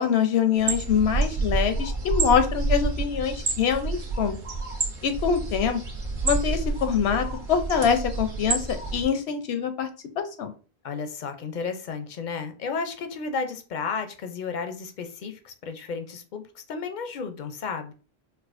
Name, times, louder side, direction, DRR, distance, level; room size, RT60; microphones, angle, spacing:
voice 1, 0.0-4.4 5.0-5.8 6.2-9.9 10.2-10.5, left 7 dB, 80° left, 8 dB, 0.8 m, -24 dB
sound 1, 0.6-9.0, right 3 dB, 55° right, 1.1 m, -29 dB
voice 2, 10.8-17.9, left 5 dB, 55° left, 7 dB, 0.6 m, -33 dB
4.8 x 2.2 x 2.5 m, 0.37 s
omnidirectional pair, 1.1 m